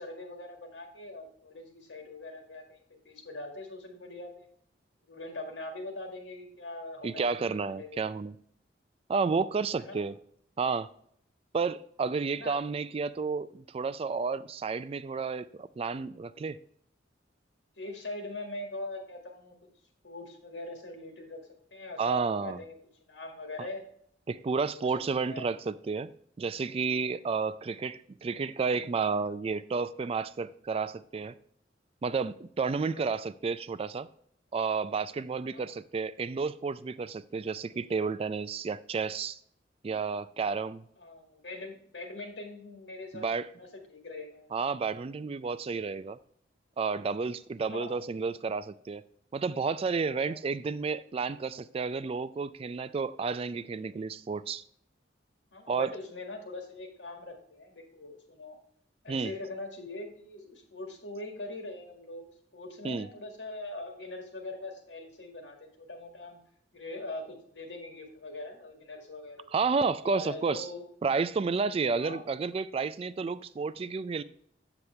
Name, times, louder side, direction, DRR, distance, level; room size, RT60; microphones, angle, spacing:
voice 1, 0.0-2.8 3.0-4.5 5.0-8.0 9.8-10.1 12.3-12.6 17.8-19.7 20.0-21.4 21.7-22.8 23.0-23.8 24.7-25.5 32.9-33.2 35.5-35.7 41.0-43.3 43.6-44.5 47.6-47.9 50.1-50.4 55.5-58.6 59.0-66.4 66.7-69.5 70.0-70.8 71.9-72.2, left 2 dB, 85° left, 3 dB, 1.9 m, -42 dB
voice 2, 7.0-8.3 9.1-10.1 10.6-10.9 11.5-16.6 22.0-22.6 23.6-23.7 24.3-26.1 26.4-31.3 32.0-34.1 34.5-39.4 39.8-40.8 43.1-43.5 44.5-46.2 46.8-49.0 49.3-54.6 55.7-55.9 59.1-59.3 62.8-63.1 69.5-70.7 71.0-74.2, right 4 dB, 30° right, 15 dB, 0.3 m, -31 dB
7.9 x 7.1 x 3.3 m, 0.66 s
head